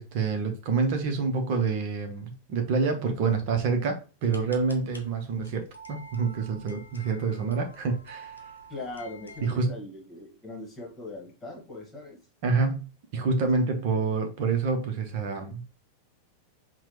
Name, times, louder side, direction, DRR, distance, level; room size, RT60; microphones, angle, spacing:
voice 1, 0.0-8.4 9.4-9.8 12.4-12.9 13.1-15.6, right 4 dB, 45° right, 0.8 m, -27 dB
sound 1, 4.2-9.5, right 2 dB, 80° left, 0.8 m, -48 dB
voice 2, 8.7-12.2, left 2 dB, 15° left, 1.4 m, -40 dB
5.8 x 2.2 x 3.0 m
figure-of-eight pair, 90°, 0 cm